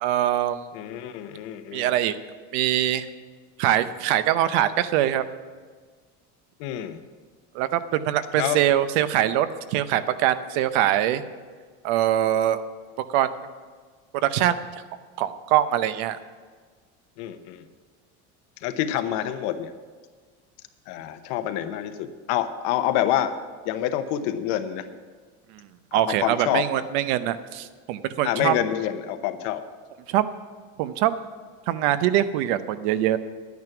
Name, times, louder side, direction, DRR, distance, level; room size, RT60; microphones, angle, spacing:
voice 1, 0.0-0.7 1.7-2.1 2.5-3.1 3.6-5.2 7.5-11.2 11.8-12.6 13.1-13.3 14.2-14.6 15.2-16.2 25.5-25.6 25.9-28.5 30.1-30.3 30.8-31.1 31.7-33.2, right 12 dB, 70° right, 13 dB, 0.7 m, -23 dB
voice 2, 0.7-1.9 6.6-7.0 8.3-8.6 17.2-17.7 18.6-19.7 20.9-23.4 23.6-24.8 25.9-26.9 28.2-29.6, left 11 dB, 60° left, 10 dB, 0.9 m, -27 dB
10.5 x 9.4 x 5.9 m, 1.5 s
cardioid pair, 170°, 33 cm